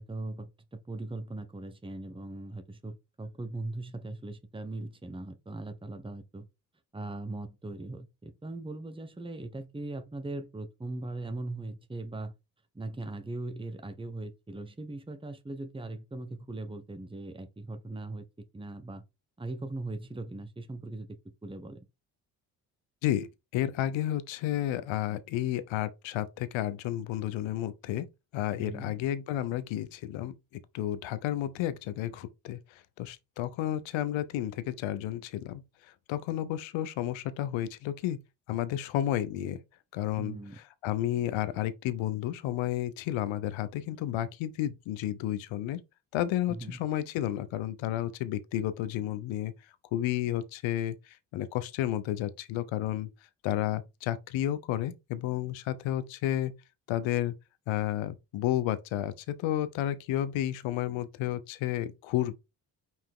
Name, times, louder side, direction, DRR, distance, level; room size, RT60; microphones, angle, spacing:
voice 1, 0.0-6.5 6.9-12.3 12.7-18.3 18.5-19.0 19.4-21.8 28.6-29.0 40.2-40.6 46.5-46.8, right 2 dB, 10° right, 1.2 m, -39 dB
voice 2, 23.0-28.1 28.3-30.3 30.7-35.6 36.1-38.2 38.5-39.6 39.9-40.4 40.8-45.8 46.1-49.5 49.9-53.1 53.4-56.5 56.9-57.3 57.7-62.4, left 12 dB, 80° left, 0.9 m, -31 dB
5.8 x 4.6 x 3.7 m
supercardioid pair, 55°, 45 cm